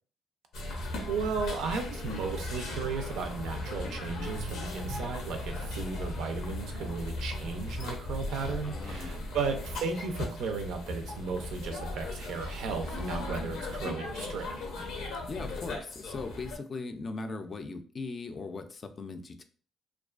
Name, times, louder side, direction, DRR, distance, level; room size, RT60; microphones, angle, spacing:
sound 1, 0.5-16.6, left 2 dB, 85° left, 0.5 m, -37 dB
voice 1, 1.1-14.5, right 5 dB, 85° right, 5 dB, 0.4 m, -35 dB
voice 2, 8.6-9.4 15.3-19.4, left 3 dB, 40° left, 7 dB, 0.3 m, -39 dB
2.4 x 2.2 x 2.3 m, 0.41 s
cardioid pair, 90°, 0 cm